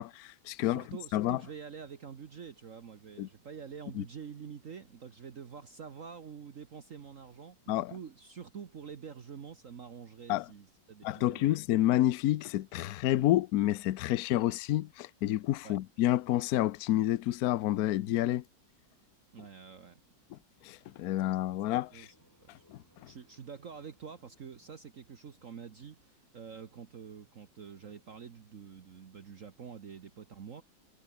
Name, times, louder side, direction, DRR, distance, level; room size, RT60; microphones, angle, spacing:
voice 1, 0.0-0.8 1.1-1.4 3.2-3.3 3.9-4.0 7.7-7.9 10.3-10.5 11.0-18.4 20.3-20.4 20.6-22.1 22.5-22.8, left 14 dB, 65° left, 1.0 m, -29 dB
voice 2, 0.6-11.6 15.6-15.8 19.3-20.0 21.9-22.1 23.1-30.6, right 6 dB, 50° right, 1.4 m, -47 dB
sound 1, 20.8-26.0, equal, 10° left, 7.1 m, -69 dB
omnidirectional pair, 2.0 m